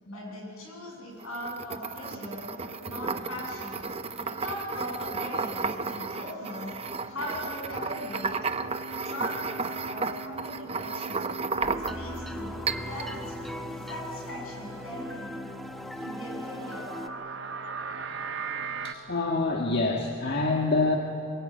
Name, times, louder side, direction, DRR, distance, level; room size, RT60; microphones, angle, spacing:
voice 1, 0.1-2.5 2.8-3.8 4.2-6.8 7.0-8.6 9.0-11.3 11.6-15.4 16.0-17.0 17.2-17.3, left 1 dB, 75° left, -1 dB, 7.7 m, -39 dB
sound 1, 1.2-12.2 12.7-13.1, right 4 dB, 30° right, 0.6 m, -33 dB
sound 2, 2.6-18.9, right 4 dB, 60° right, 1.2 m, -43 dB
sound 3, 11.6-17.1, equal, ahead, 0.9 m, -38 dB
voice 2, 18.8-21.0, left 3 dB, 50° left, 0 dB, 1.5 m, -26 dB
23.0 x 22.0 x 9.2 m, 2.8 s
head